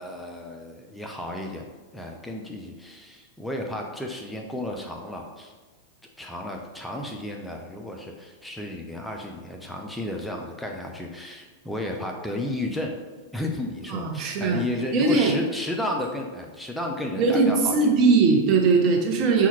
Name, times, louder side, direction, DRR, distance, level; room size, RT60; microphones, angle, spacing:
voice 1, 0.0-5.5 6.2-13.0 13.3-17.9, left 1 dB, 5° left, 1 dB, 0.4 m, -33 dB
voice 2, 13.9-14.6 14.9-15.3 17.2-19.5, right 4 dB, 40° right, 2 dB, 0.7 m, -20 dB
5.5 x 2.3 x 3.1 m, 1.3 s
hypercardioid pair, 95°, 0 cm